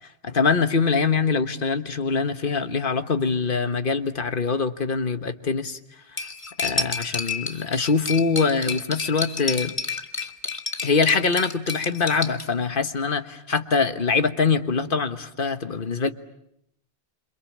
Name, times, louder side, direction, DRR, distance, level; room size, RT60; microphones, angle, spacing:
voice 1, 0.2-5.8 6.6-9.7 10.8-16.1, left 5 dB, 55° left, 9 dB, 1.5 m, -23 dB
Cutlery silverware, 6.2-12.4, left 3 dB, 30° left, 1.5 m, -30 dB
27.5 x 27.0 x 7.4 m, 0.76 s
omnidirectional pair, 1.1 m